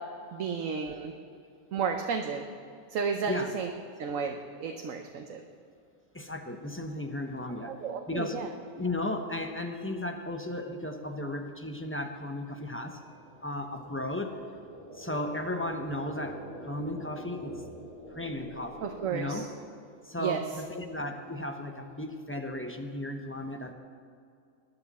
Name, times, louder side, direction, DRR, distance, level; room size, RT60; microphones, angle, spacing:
voice 1, 0.3-1.1 1.7-2.5 2.9-3.7 4.0-5.4 7.7-8.5 18.8-19.4 20.2-20.4, right 6 dB, 85° right, 4 dB, 1.2 m, -32 dB
voice 2, 6.1-7.8 8.1-8.5 8.8-13.0 13.4-14.4 14.9-17.6 18.1-19.5 20.0-23.7, left 1 dB, 10° left, 4 dB, 0.8 m, -35 dB
sound 1, 11.5-20.2, equal, 30° right, 3.1 m, -47 dB
20.0 x 11.0 x 4.2 m, 2.4 s
omnidirectional pair, 1.3 m